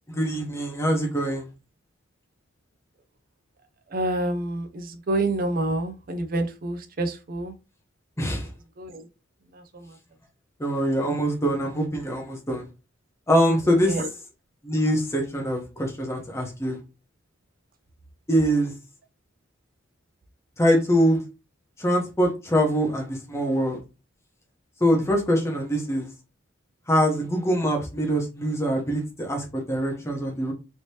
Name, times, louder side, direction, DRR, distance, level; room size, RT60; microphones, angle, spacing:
voice 1, 0.1-1.4 8.2-8.5 10.6-12.7 13.3-14.1 14.6-16.8 18.3-18.7 20.6-21.2 21.8-23.8 24.8-26.1 26.9-30.5, equal, 15° left, 0.9 m, -24 dB
voice 2, 3.9-7.5 8.8-9.0 9.7-9.9 13.8-14.1, right 2 dB, 45° right, 0.5 m, -28 dB
3.3 x 2.9 x 2.8 m
head